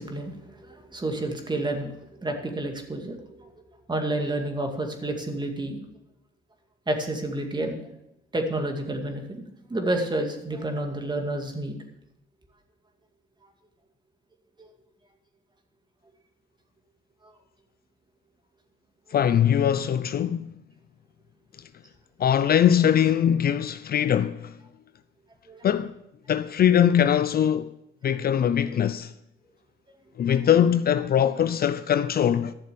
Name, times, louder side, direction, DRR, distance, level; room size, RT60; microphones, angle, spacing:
voice 1, 0.0-1.9 2.2-3.5 3.9-5.8 6.9-7.9 8.3-9.4 9.7-11.8 14.6-14.7 17.2-17.3 25.5-25.7, right 1 dB, 20° right, 2.2 m, -30 dB
voice 2, 19.1-20.5 22.2-24.5 25.6-25.9 26.3-27.7 28.0-29.1 30.2-32.5, left 9 dB, 50° left, 0.5 m, -22 dB
12.5 x 6.8 x 6.9 m
cardioid pair, 90°, 20 cm